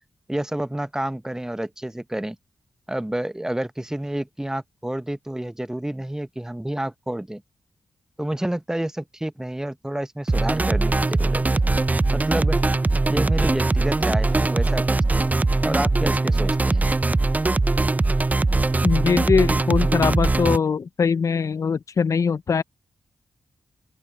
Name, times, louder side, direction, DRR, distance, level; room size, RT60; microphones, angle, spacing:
voice 1, 0.3-2.4 2.9-7.4 8.2-11.6 12.1-12.6 13.1-15.3 15.6-16.8, right 1 dB, 10° right, 0.9 m, -29 dB
sound 1, 10.3-20.6, right 2 dB, 25° right, 0.5 m, -21 dB
voice 2, 18.8-22.6, left 5 dB, 55° left, 0.6 m, -21 dB
open air
supercardioid pair, 40°, 6 cm